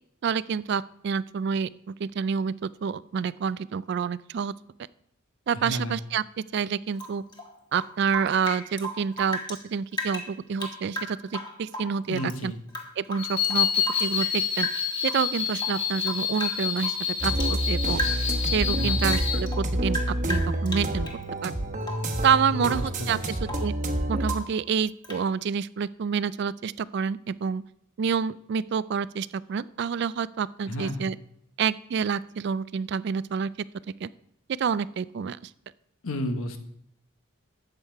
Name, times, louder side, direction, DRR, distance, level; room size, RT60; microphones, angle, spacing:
voice 1, 0.2-4.5 5.5-7.2 7.7-12.5 13.0-13.7 14.0-14.7 15.0-18.0 18.5-21.1 21.4-21.5 22.2-23.2 23.6-23.7 24.1-27.6 28.0-31.2 31.6-33.5 34.0-34.1 34.6-35.5, right 6 dB, 50° right, 18 dB, 0.3 m, -28 dB
voice 2, 5.5-6.0 12.1-12.6 18.7-19.1 22.5-23.3 30.7-31.1 36.0-36.6, equal, 85° left, 7 dB, 1.3 m, -32 dB
Rain / Drip, 6.9-9.6 9.9-12.4 12.7-14.4 14.6-15.3 15.6-17.6 17.9-18.4 18.7-21.2 21.8-22.2 22.6-22.9 23.2-23.8 24.2-24.6 25.0-25.3, equal, 20° left, 1.5 m, -36 dB
sound 1, 13.2-19.4, left 8 dB, 60° left, 4.4 m, -28 dB
sound 2, 17.2-24.3, right 1 dB, 35° right, 1.1 m, -28 dB
12.5 x 8.2 x 4.6 m, 0.73 s
head